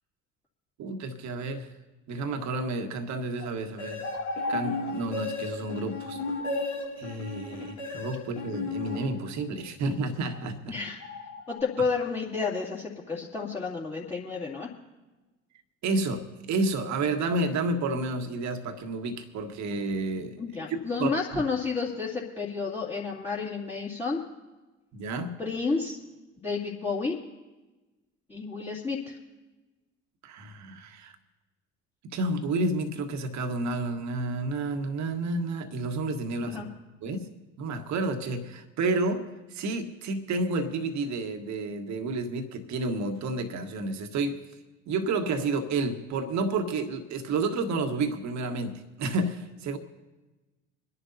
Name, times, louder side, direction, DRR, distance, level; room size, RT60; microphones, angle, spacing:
voice 1, 0.8-1.7 2.1-4.0 4.5-6.2 7.0-10.7 15.8-20.4 20.7-21.4 24.9-25.3 30.2-31.1 32.1-36.6 37.0-37.3 37.6-44.4 44.9-49.8, right 2 dB, 50° right, 6 dB, 1.6 m, -30 dB
sound 1, 3.4-3.5 4.0-4.9 6.0-6.7 10.3-10.5 11.0-11.6, left 2 dB, 40° left, 1.4 m, -35 dB
sound 2, 3.8-9.6, left 3 dB, 80° left, 2.7 m, -35 dB
voice 2, 10.7-11.0 11.5-14.7 20.4-24.2 25.4-26.0 26.4-27.2 28.3-29.2 36.4-36.7, left 4 dB, 15° left, -8 dB, 2.4 m, -31 dB
26.5 x 11.0 x 2.8 m, 1.1 s
hypercardioid pair, 60°, 35 cm